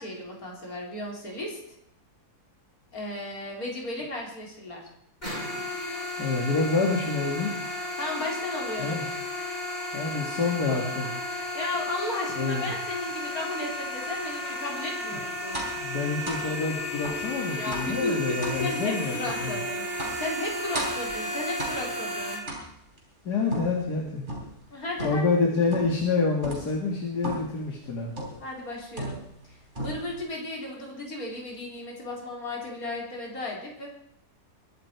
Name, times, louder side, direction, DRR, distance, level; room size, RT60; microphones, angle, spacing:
voice 1, 0.0-1.6 2.9-4.9 8.0-9.0 11.5-15.6 17.6-19.9 20.2-22.4 24.7-25.3 28.4-29.2 29.4-33.9, left 2 dB, 65° left, -1 dB, 4.5 m, -34 dB
sound 1, 5.2-22.3, left 1 dB, 25° left, 7.2 m, -33 dB
voice 2, 6.2-7.5 8.8-9.0 9.9-11.1 12.3-12.7 15.8-19.6 23.2-24.3 25.0-28.1, left 4 dB, 85° left, -1 dB, 2.7 m, -27 dB
sound 2, 15.5-15.8 16.3-16.5 17.0-17.3 17.7-18.0 18.4-18.6 19.3-19.5 20.0-20.3 20.7-21.1 21.6-22.0 22.5-23.0 23.5-24.6 25.0-25.4 25.7-26.1 26.4-26.7 27.2-27.6 28.2-28.5 29.0-29.5 29.8-30.2, right 1 dB, 30° right, 4.0 m, -35 dB
22.0 x 11.0 x 4.7 m, 0.74 s
omnidirectional pair, 1.7 m